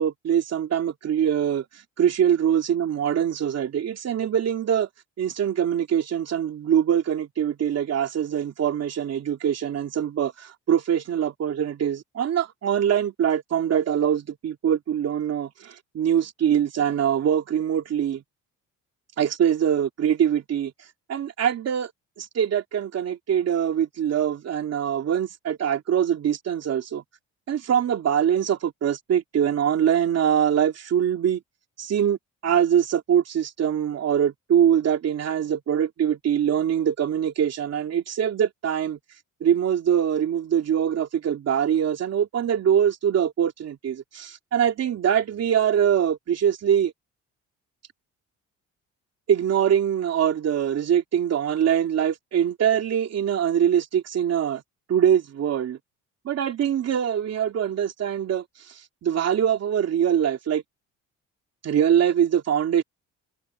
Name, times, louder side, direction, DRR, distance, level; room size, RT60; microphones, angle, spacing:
voice 1, 0.0-1.7 2.0-4.9 5.2-18.2 19.2-20.7 21.1-21.9 22.2-27.0 27.5-31.4 31.8-32.2 32.4-39.0 39.4-46.9 49.3-54.6 54.9-55.8 56.2-60.6 61.6-62.8, right 9 dB, 55° right, 3.0 m, -23 dB
cardioid pair, 125°, 31 cm